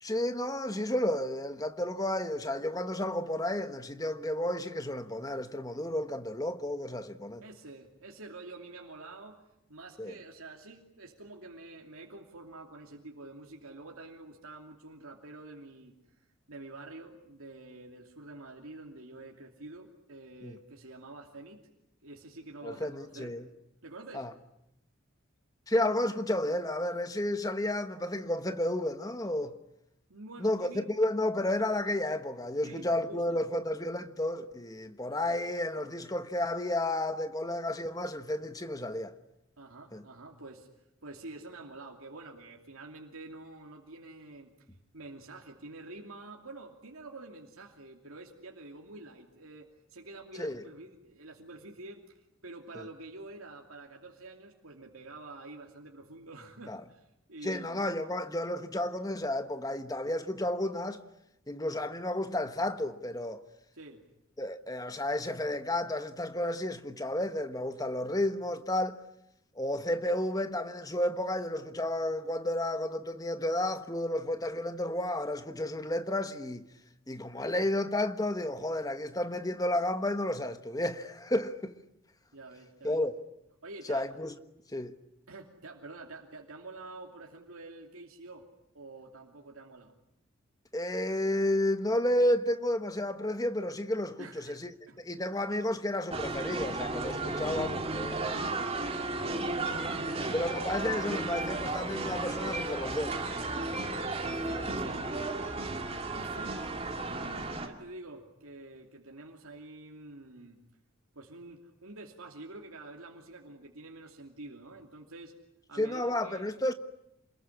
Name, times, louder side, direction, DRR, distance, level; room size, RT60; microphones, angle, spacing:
voice 1, 0.0-7.4 10.0-10.1 20.4-20.6 22.6-23.5 24.1-24.3 25.7-29.5 30.4-39.2 39.9-40.0 50.4-50.6 52.7-52.8 56.7-56.8 57.4-61.0 61.5-63.4 64.4-69.0 69.5-76.6 77.1-81.7 82.8-83.2 83.9-84.3 84.7-84.9 90.7-98.4 99.3-99.5 100.3-103.7 115.8-116.7, left 1 dB, 15° left, 1.2 m, -32 dB
voice 2, 7.4-9.4 9.7-21.6 22.0-23.4 23.8-24.3 30.1-30.9 32.6-33.4 39.6-40.7 41.0-44.5 44.9-57.8 63.7-64.0 82.3-83.0 83.6-84.1 85.3-88.5 88.7-89.9 94.2-94.6 94.9-95.0 98.3-98.6 99.9-100.6 103.5-103.8 104.2-105.1 106.1-106.9 107.2-110.6 111.1-115.3 115.7-116.5, right 2 dB, 85° right, 2.8 m, -48 dB
sound 1, 96.1-107.7, right 2 dB, 25° right, 2.5 m, -34 dB
27.5 x 21.0 x 9.9 m
head